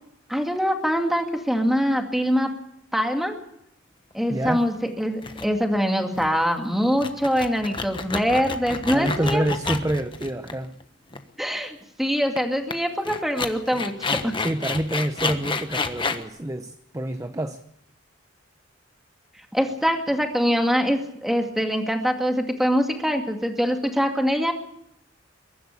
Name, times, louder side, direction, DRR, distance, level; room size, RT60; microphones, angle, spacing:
voice 1, 0.3-2.5 2.9-3.3 4.1-9.8 11.4-14.3 19.5-24.5, equal, ahead, 4 dB, 2.3 m, -24 dB
voice 2, 4.3-4.7 8.9-10.8 14.4-17.6, right 1 dB, 15° right, 8 dB, 0.8 m, -27 dB
sound 1, 4.5-4.8 5.2-5.5 5.8-5.9 6.2-6.4 6.9-10.8 11.1-11.2 12.4-12.5 12.7-12.8 13.0-16.2, left 4 dB, 25° left, 1.3 m, -30 dB
22.5 x 12.0 x 9.7 m, 0.77 s
head